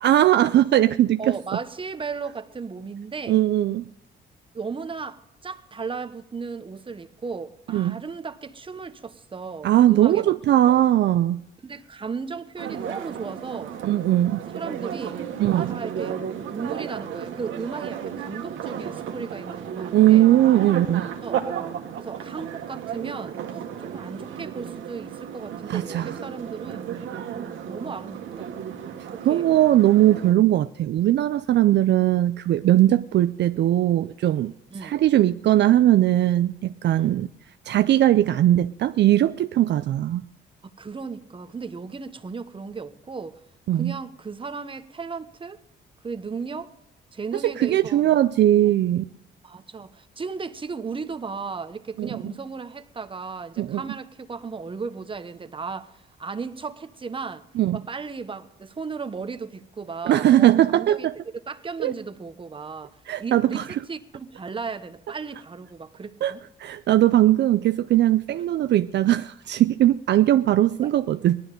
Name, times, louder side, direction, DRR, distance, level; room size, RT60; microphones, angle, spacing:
voice 1, 0.0-1.4 3.3-3.9 7.7-8.0 9.6-11.4 13.8-14.4 15.4-15.7 19.9-21.1 25.7-26.2 29.3-34.5 34.8-37.3 37.7-40.2 43.7-43.9 47.4-49.0 52.0-52.2 53.6-53.8 57.6-57.8 60.1-61.1 61.8-61.9 63.1-63.6 66.2-66.3 66.6-71.4, right 13 dB, 60° right, 0.4 m, -19 dB
voice 2, 1.2-3.4 4.5-10.3 10.6-10.8 11.6-13.7 14.5-15.2 15.6-16.2 16.5-20.3 21.2-21.4 22.0-27.0 27.4-28.7 29.1-29.4 34.7-35.0 36.9-37.3 40.8-43.4 43.7-45.6 46.0-46.7 47.1-48.2 48.6-48.8 49.4-57.4 57.7-61.1 61.5-66.4 70.8-70.9, right 5 dB, 25° right, 1.0 m, -35 dB
sound 1, 12.6-30.3, right 8 dB, 80° right, 1.5 m, -34 dB
18.0 x 12.0 x 5.2 m
cardioid pair, 90°, 20 cm